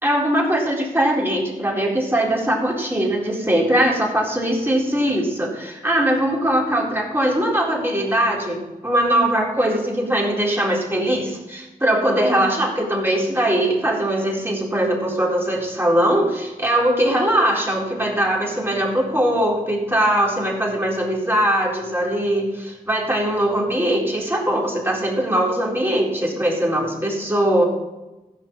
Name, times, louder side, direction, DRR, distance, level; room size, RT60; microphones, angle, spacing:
voice 1, 0.0-8.6 8.8-27.6, right 1 dB, 15° right, -3 dB, 4.2 m, -21 dB
15.5 x 6.4 x 7.2 m, 1.1 s
cardioid pair, 60°, 16 cm